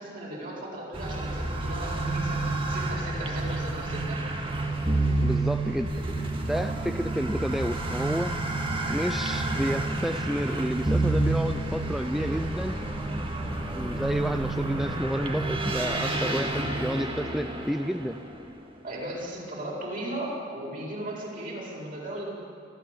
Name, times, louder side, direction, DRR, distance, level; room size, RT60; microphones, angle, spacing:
voice 1, 0.0-2.4 2.7-4.2 6.5-7.1 18.8-22.3, right 1 dB, 50° right, -4 dB, 8.0 m, -36 dB
sound 1, 0.9-18.9, right 2 dB, 30° right, 2.1 m, -29 dB
voice 2, 5.2-5.9 6.4-8.4 8.9-12.8 13.7-18.2, equal, ahead, 7 dB, 0.6 m, -30 dB
27.0 x 14.0 x 8.8 m, 2.7 s
head